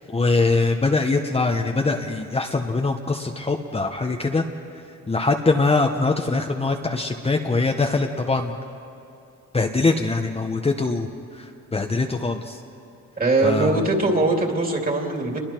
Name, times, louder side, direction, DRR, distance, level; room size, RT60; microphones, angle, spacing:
voice 1, 0.1-4.4 5.1-8.5 9.5-12.6 13.4-13.8, left 3 dB, 20° left, 3 dB, 1.1 m, -23 dB
voice 2, 13.2-15.4, right 2 dB, 30° right, 1 dB, 3.1 m, -21 dB
28.5 x 22.0 x 4.6 m, 2.7 s
cardioid pair, 90°, 30 cm